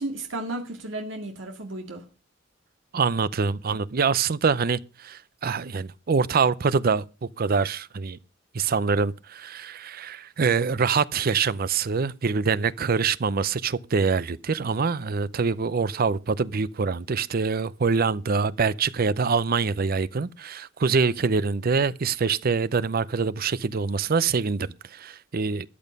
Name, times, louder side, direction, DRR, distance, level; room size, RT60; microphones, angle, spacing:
voice 1, 0.0-2.0, right 2 dB, 90° right, 2.1 m, -33 dB
voice 2, 2.9-7.0 7.4-8.2 8.5-25.7, right 5 dB, 50° right, 0.6 m, -25 dB
13.5 x 9.1 x 5.3 m
head